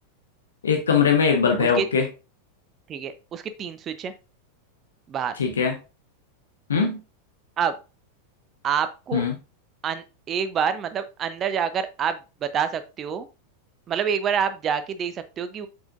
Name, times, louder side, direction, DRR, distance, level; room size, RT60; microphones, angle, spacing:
voice 1, 0.6-2.1 5.4-5.8 6.7-7.0 9.1-9.3, left 6 dB, 70° left, 4 dB, 1.2 m, -21 dB
voice 2, 2.9-4.1 5.1-5.3 7.6-7.7 8.6-9.2 9.8-13.3 13.9-15.7, right 7 dB, 30° right, 11 dB, 0.7 m, -27 dB
7.2 x 5.6 x 2.5 m, 0.29 s
figure-of-eight pair, 90°, 0 cm